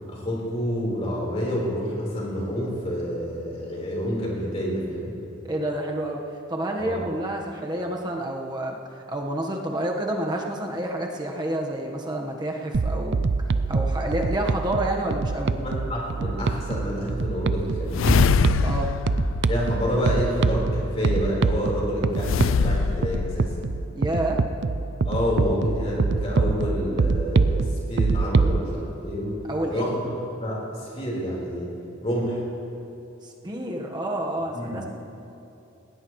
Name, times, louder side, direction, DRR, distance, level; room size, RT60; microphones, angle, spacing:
voice 1, 0.1-5.1 6.8-7.0 15.5-18.0 19.5-23.5 25.0-29.3 29.7-31.7 32.0-32.4 34.5-34.8, equal, 30° left, -4 dB, 4.3 m, -28 dB
voice 2, 5.4-6.2 6.5-13.2 13.7-15.5 18.6-18.9 23.9-24.4 29.5-29.9 33.2-34.9, right 1 dB, 20° right, 0 dB, 1.3 m, -29 dB
sound 1, 12.7-28.6, right 4 dB, 60° right, 0.5 m, -25 dB
sound 2, 17.9-20.4 22.2-23.9, left 6 dB, 75° left, 0.4 m, -24 dB
19.5 x 18.5 x 3.2 m, 2.8 s
head